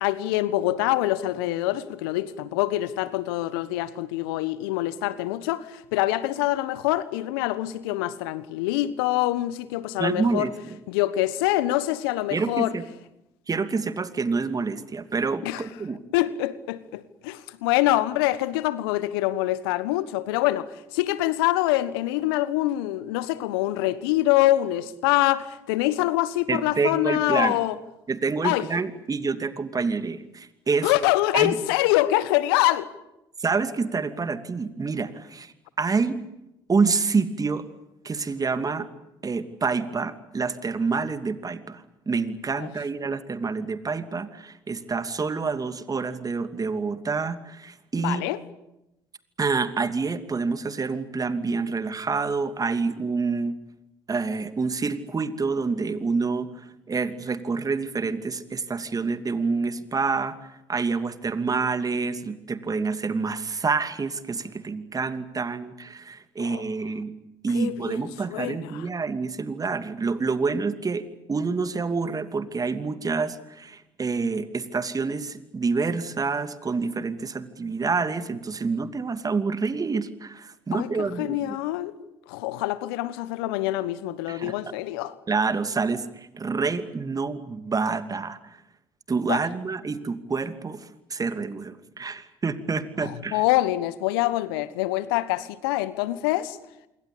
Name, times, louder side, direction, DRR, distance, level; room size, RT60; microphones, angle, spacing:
voice 1, 0.0-10.5 10.9-12.7 15.4-15.6 16.1-27.8 28.4-28.7 30.8-32.9 42.6-42.7 48.0-48.4 66.4-66.7 67.5-68.8 80.7-80.9 81.2-81.9 82.3-85.1 89.3-89.4 93.0-96.6, left 16 dB, 75° left, 1.3 m, -25 dB
voice 2, 10.0-10.8 12.3-12.8 13.5-16.0 26.5-27.6 28.1-30.9 31.3-31.6 33.4-36.2 36.7-37.6 38.0-38.9 39.2-48.3 49.4-53.6 54.1-60.4 60.7-67.1 67.4-81.6 84.3-84.5 85.3-88.6 89.1-93.4, right 4 dB, 30° right, 2.7 m, -27 dB
27.0 x 23.0 x 8.6 m
hypercardioid pair, 55°, 12 cm